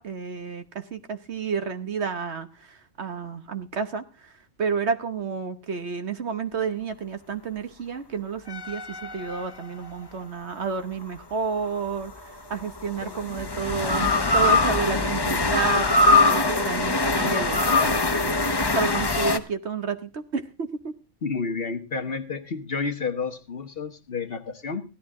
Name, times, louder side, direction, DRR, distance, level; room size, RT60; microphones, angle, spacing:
voice 1, 0.0-4.3 4.6-20.9, right 5 dB, 55° right, 9 dB, 1.2 m, -31 dB
sound 1, 8.5-10.0 11.9-19.4, left 3 dB, 20° left, 0.7 m, -23 dB
voice 2, 21.2-24.8, left 4 dB, 45° left, 7 dB, 1.2 m, -30 dB
16.0 x 11.5 x 3.6 m, 0.33 s
omnidirectional pair, 1.5 m